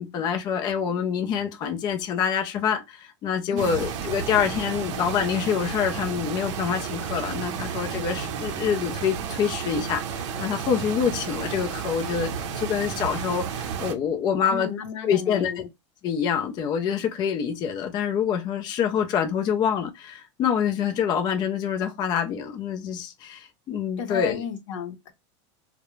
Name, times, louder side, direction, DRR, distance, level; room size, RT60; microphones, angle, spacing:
voice 1, 0.0-14.7 15.0-15.6 16.0-24.4, left 7 dB, 30° left, 0.3 m, -26 dB
voice 2, 3.5-4.3 14.5-15.7 24.0-25.1, left 7 dB, 80° left, 0.6 m, -34 dB
sound 1, 3.6-13.9, right 7 dB, 80° right, 0.5 m, -32 dB
2.3 x 2.0 x 3.0 m
supercardioid pair, 150°, 15 cm